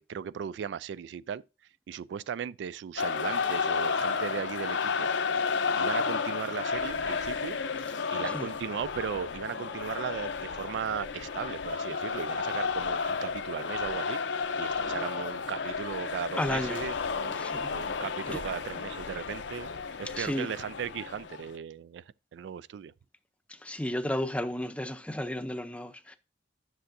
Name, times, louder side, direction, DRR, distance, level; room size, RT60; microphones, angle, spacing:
voice 1, 0.0-1.4 1.9-5.1 5.8-7.6 8.1-17.4 17.7-19.7 20.0-22.0 22.3-22.9, right 7 dB, 75° right, 0.3 m, -37 dB
sound 1, 3.0-21.5, left 5 dB, 85° left, 0.6 m, -32 dB
voice 2, 16.4-16.9 17.4-17.7 18.3-18.4 20.1-20.5 23.6-26.2, left 1 dB, 5° left, 0.5 m, -33 dB
10.0 x 6.3 x 2.6 m
head